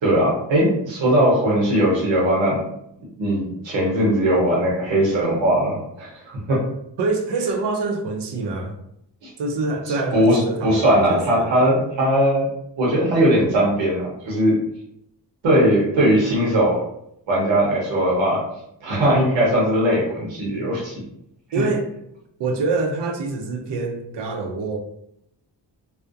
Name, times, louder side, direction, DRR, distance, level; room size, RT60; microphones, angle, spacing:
voice 1, 0.0-2.6 3.2-6.2 6.5-6.6 9.2-9.3 10.1-12.5 12.8-14.6 15.4-16.8 17.3-18.4 18.8-21.0 21.5-21.6, equal, 85° right, -4 dB, 0.9 m, -19 dB
voice 2, 7.0-8.7 9.4-11.5 21.5-21.9 22.4-24.8, right 3 dB, 65° right, 3 dB, 0.6 m, -25 dB
2.4 x 2.1 x 2.5 m, 0.76 s
cardioid pair, 75°, 45 cm